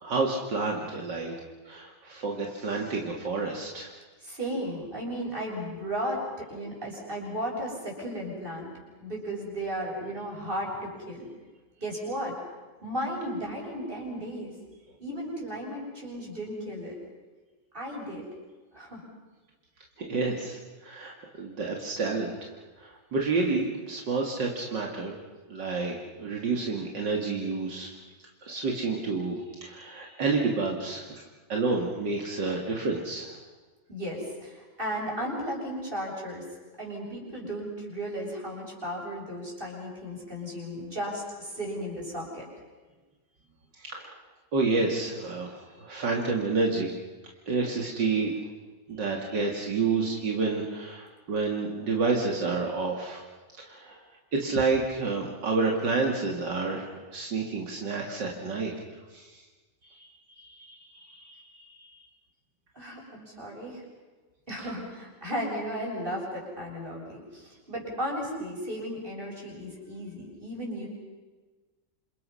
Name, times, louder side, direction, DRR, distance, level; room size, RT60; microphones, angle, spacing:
voice 1, 0.0-1.4 1.7-3.9 20.0-22.5 22.8-25.2 25.5-27.9 28.4-33.4 43.8-44.2 44.5-46.9 47.5-48.3 48.9-53.2 53.6-54.0 54.3-59.4 59.8-61.9 64.6-64.7, right 4 dB, 75° right, 0 dB, 2.9 m, -29 dB
voice 2, 4.2-8.7 9.0-11.3 11.8-12.3 12.8-14.5 15.0-17.0 17.7-18.3 18.7-19.0 33.9-36.4 36.8-42.5 62.8-63.8 64.5-70.9, equal, 30° right, -2 dB, 7.3 m, -35 dB
28.5 x 27.5 x 5.7 m, 1.3 s
omnidirectional pair, 1.9 m